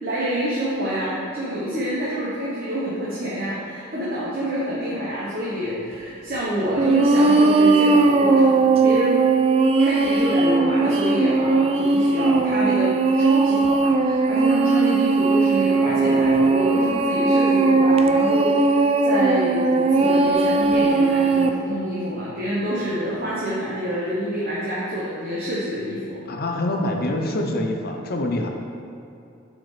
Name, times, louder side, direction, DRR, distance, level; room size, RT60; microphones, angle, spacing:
voice 1, 0.0-9.3 9.8-26.2, equal, 50° right, -8 dB, 1.1 m, -27 dB
sound 1, 6.8-21.5, right 3 dB, 30° right, 0.3 m, -18 dB
voice 2, 26.3-28.5, left 1 dB, 50° left, 2 dB, 0.6 m, -25 dB
7.9 x 4.5 x 3.3 m, 2.7 s
head